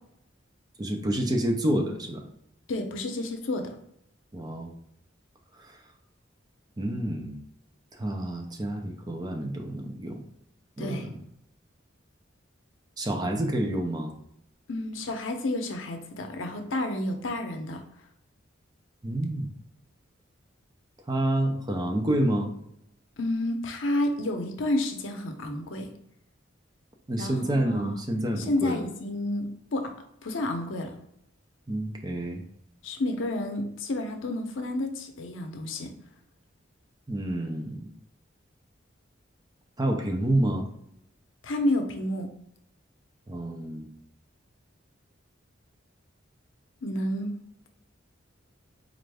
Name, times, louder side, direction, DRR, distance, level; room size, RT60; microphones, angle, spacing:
voice 1, 0.8-2.2 4.3-4.7 5.6-5.8 6.8-7.4 8.0-10.2 10.8-11.2 13.0-14.1 19.0-19.5 21.1-22.5 27.1-28.8 31.7-32.4 37.1-37.9 39.8-40.7 43.3-43.9, right 1 dB, 20° right, 2 dB, 0.5 m, -28 dB
voice 2, 2.7-3.7 10.8-11.1 14.7-17.8 23.2-25.9 27.2-27.9 28.4-29.9 30.2-30.9 32.8-35.9 41.4-42.3 46.8-47.3, left 1 dB, 80° left, 5 dB, 0.6 m, -30 dB
4.4 x 2.5 x 3.3 m, 0.75 s
head